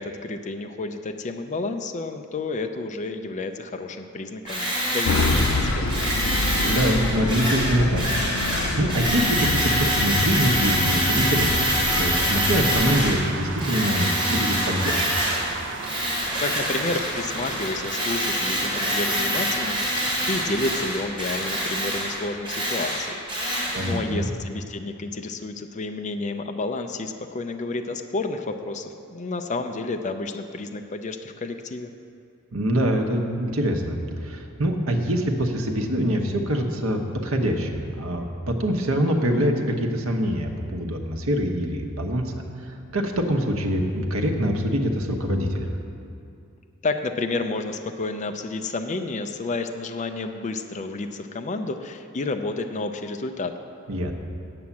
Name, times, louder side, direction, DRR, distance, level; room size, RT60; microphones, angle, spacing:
voice 1, 0.0-5.9 16.4-31.9 46.8-53.5, left 3 dB, 35° left, 6 dB, 0.5 m, -30 dB
Tools, 4.5-13.2 13.6-15.5 15.8-23.9, equal, 25° right, 2.9 m, -25 dB
sound 1, 5.0-13.1, left 3 dB, 80° left, 0.6 m, -27 dB
voice 2, 6.6-15.4 23.7-24.3 32.5-42.3 42.6-45.8 53.9-54.1, equal, 80° right, 3 dB, 1.1 m, -24 dB
sound 2, 11.2-21.1, right 4 dB, 60° right, 0.6 m, -37 dB
8.6 x 7.8 x 7.1 m, 2.6 s
head